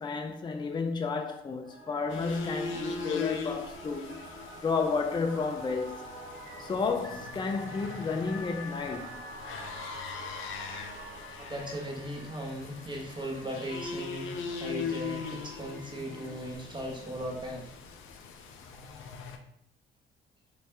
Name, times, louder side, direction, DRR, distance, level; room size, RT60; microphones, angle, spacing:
voice 1, 0.0-4.1 4.6-6.1 6.6-9.2, left 4 dB, 25° left, 0.4 m, -31 dB
Singing / Musical instrument, 1.6-12.9, right 2 dB, 80° right, 1.0 m, -48 dB
sound 1, 2.1-19.4, left 5 dB, 80° left, 0.5 m, -41 dB
sound 2, 5.2-16.6, equal, 50° right, 1.3 m, -49 dB
voice 2, 11.1-17.8 19.0-19.1, right 1 dB, 25° right, 1.0 m, -38 dB
3.3 x 2.8 x 3.2 m
cardioid pair, 90°, 20 cm